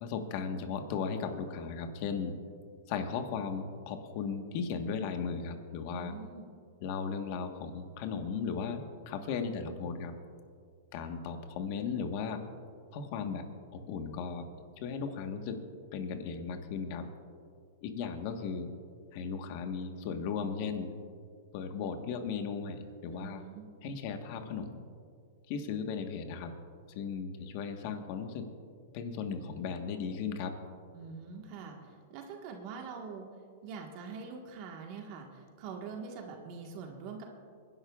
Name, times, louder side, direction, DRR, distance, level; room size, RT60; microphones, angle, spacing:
voice 1, 0.0-2.3 2.9-6.1 6.8-10.2 10.9-12.4 12.9-13.4 13.7-14.4 14.8-15.6 15.9-17.1 17.8-18.7 19.1-20.9 21.5-23.5 23.8-24.8 25.5-26.5 26.9-28.5 28.9-30.5, left 6 dB, 50° left, 6 dB, 1.3 m, -36 dB
voice 2, 5.9-6.5 23.1-23.7 30.9-33.3 33.6-37.2, right 5 dB, 45° right, 2 dB, 1.5 m, -44 dB
26.0 x 11.0 x 2.4 m, 2.2 s
hypercardioid pair, 140°, 0 cm